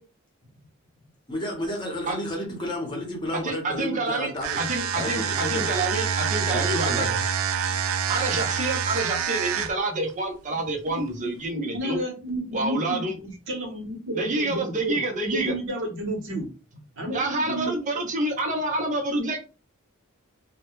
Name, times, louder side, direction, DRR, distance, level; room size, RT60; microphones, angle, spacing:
voice 1, 1.3-4.6 4.9-5.7 6.5-7.1 7.7-7.8 8.3-8.4, left 1 dB, 20° left, 0.8 m, -32 dB
voice 2, 3.3-7.1 8.1-12.0 12.5-13.2 14.1-15.5 17.1-19.4, right 2 dB, 35° right, 0.6 m, -28 dB
sound 1, 4.4-9.9, right 7 dB, 80° right, 0.3 m, -27 dB
voice 3, 10.8-15.0 15.3-17.7, equal, 65° right, 0.9 m, -32 dB
2.2 x 2.1 x 3.0 m
head